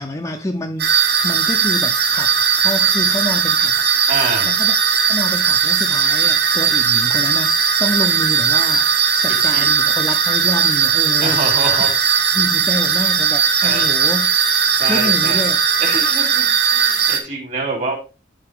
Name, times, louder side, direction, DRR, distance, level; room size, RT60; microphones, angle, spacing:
voice 1, 0.0-3.9 4.4-4.7 5.1-8.9 9.2-11.4 12.3-14.3 14.9-15.6, left 1 dB, 15° left, 0.6 m, -27 dB
sound 1, 0.8-17.2, right 7 dB, 60° right, 1.2 m, -17 dB
voice 2, 4.1-4.5 9.5-9.7 11.2-12.0 13.6-13.9 14.7-15.4 15.8-18.0, right 3 dB, 40° right, 3.2 m, -25 dB
10.5 x 4.1 x 3.5 m
head